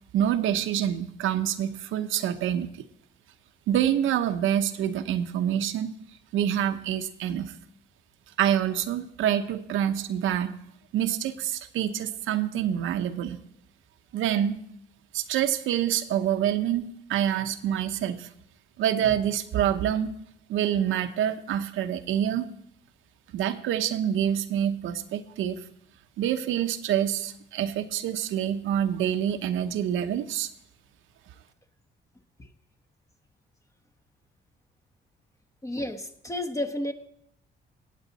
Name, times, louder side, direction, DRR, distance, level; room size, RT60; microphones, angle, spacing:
voice 1, 0.1-2.7 3.7-6.0 6.3-7.5 8.4-10.6 10.9-13.4 14.1-14.6 15.1-18.3 18.8-20.2 20.5-22.5 23.3-25.6 26.2-30.5, right 10 dB, 85° right, 8 dB, 0.8 m, -26 dB
voice 2, 35.6-36.9, left 1 dB, 15° left, 7 dB, 1.0 m, -31 dB
17.0 x 8.3 x 4.1 m, 0.75 s
cardioid pair, 90°, 20 cm